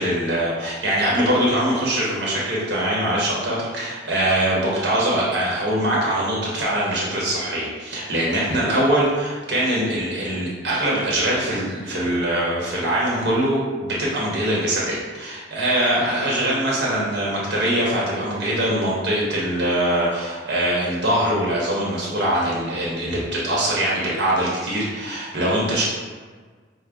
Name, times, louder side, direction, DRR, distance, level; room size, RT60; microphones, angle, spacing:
voice 1, 0.0-25.8, right 1 dB, 65° right, -5 dB, 0.9 m, -22 dB
5.0 x 2.0 x 3.4 m, 1.5 s
head